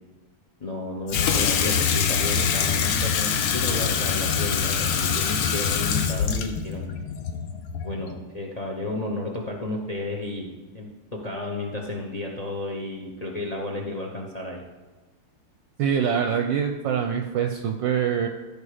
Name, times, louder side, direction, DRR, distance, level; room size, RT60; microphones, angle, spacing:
voice 1, 0.6-6.9 7.8-14.6, left 2 dB, 45° left, 1 dB, 0.5 m, -32 dB
Water tap faucet / Sink (filling or washing), 1.1-8.1, left 7 dB, 75° left, 1.6 m, -24 dB
voice 2, 15.8-18.3, right 8 dB, 70° right, 5 dB, 1.2 m, -24 dB
14.5 x 5.1 x 5.0 m, 1.3 s
omnidirectional pair, 2.4 m